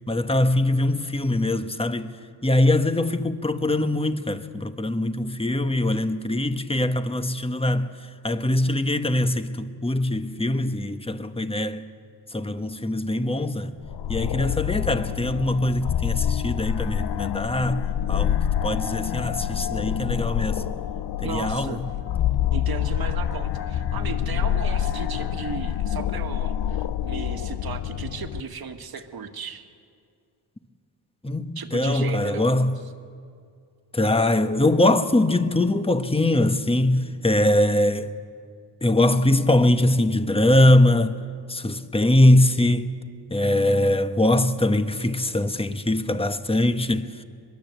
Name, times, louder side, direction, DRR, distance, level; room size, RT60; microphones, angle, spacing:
voice 1, 0.1-2.1 2.4-7.9 8.2-11.8 12.3-13.7 14.1-17.8 18.1-20.7 21.2-21.8 31.2-32.7 33.9-38.1 38.8-41.2 41.5-42.9 43.3-47.2, left 1 dB, 15° left, 1.4 m, -22 dB
sound 1, 13.8-28.4, left 10 dB, 75° left, 0.8 m, -27 dB
voice 2, 21.2-21.9 22.5-29.7 31.6-32.5, right 6 dB, 60° right, 2.0 m, -35 dB
22.5 x 22.5 x 8.1 m
cardioid pair, 70°, 41 cm